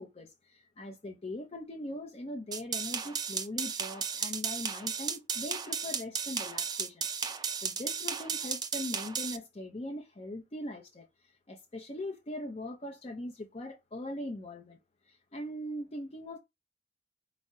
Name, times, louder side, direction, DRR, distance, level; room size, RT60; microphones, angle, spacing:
voice 1, 0.0-14.8 15.1-16.4, left 1 dB, 35° left, 0.5 m, -41 dB
sound 1, 2.5-9.4, right 6 dB, 20° right, 0.3 m, -34 dB
5.4 x 2.1 x 3.6 m
head